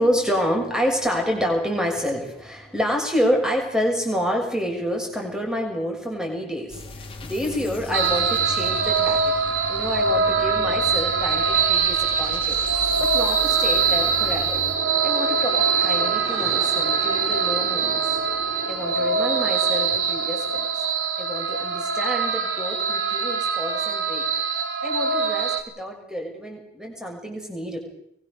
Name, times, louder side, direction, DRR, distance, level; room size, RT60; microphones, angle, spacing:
voice 1, 0.0-9.3 9.7-12.6 13.0-14.6 15.0-18.2 18.7-20.8 21.2-24.2 24.8-27.8, equal, 5° right, 1 dB, 6.6 m, -28 dB
sound 1, 6.7-14.8, left 2 dB, 25° left, 2.9 m, -37 dB
sound 2, 7.9-25.6, right 5 dB, 75° right, 3.9 m, -23 dB
sound 3, 12.0-21.0, right 2 dB, 35° right, 5.4 m, -38 dB
23.0 x 21.5 x 6.9 m, 0.73 s
head